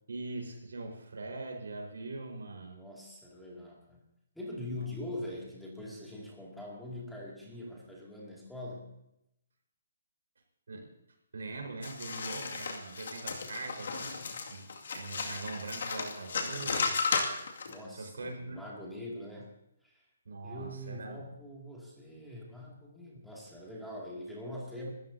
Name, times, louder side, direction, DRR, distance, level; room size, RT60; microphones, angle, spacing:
voice 1, 0.1-2.9 4.7-4.9 10.7-10.9 11.3-14.2 14.5-17.2 17.9-18.6 20.2-21.3, right 3 dB, 85° right, 2 dB, 4.7 m, -42 dB
voice 2, 2.7-4.0 4.3-8.9 17.7-19.5 19.8-20.1 20.4-24.9, left 1 dB, ahead, -4 dB, 2.5 m, -43 dB
sound 1, 11.8-17.7, left 5 dB, 65° left, 2.3 m, -34 dB
25.5 x 13.5 x 2.8 m, 0.82 s
hypercardioid pair, 165°, 0 cm